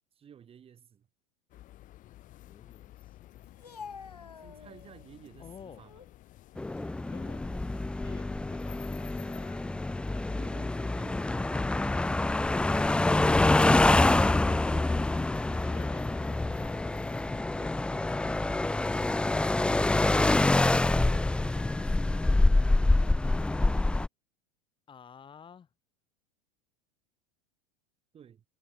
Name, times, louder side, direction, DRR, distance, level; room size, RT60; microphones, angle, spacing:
voice 1, 0.2-1.1 4.4-6.0 10.3-12.4 17.5-18.7 19.2-19.9 20.5-22.3 28.1-28.4, right 8 dB, 30° right, 6.7 m, -53 dB
sound 1, 1.5-17.4, left 15 dB, 40° left, 6.1 m, -54 dB
voice 2, 2.5-3.5 5.4-5.8 7.1-7.5 8.0-9.6 15.5-16.9 24.9-25.7, left 7 dB, 25° left, 6.0 m, -51 dB
Speech, 3.4-5.1 5.6-6.2 6.6-7.8 8.1-8.3 9.1-10.1 10.6-10.8 11.5-11.8 12.6-13.3 14.1-14.8, left 6 dB, 85° left, 2.6 m, -51 dB
sound 2, 6.6-24.1, left 2 dB, 5° left, 0.5 m, -26 dB
hypercardioid pair, 85°, 20 cm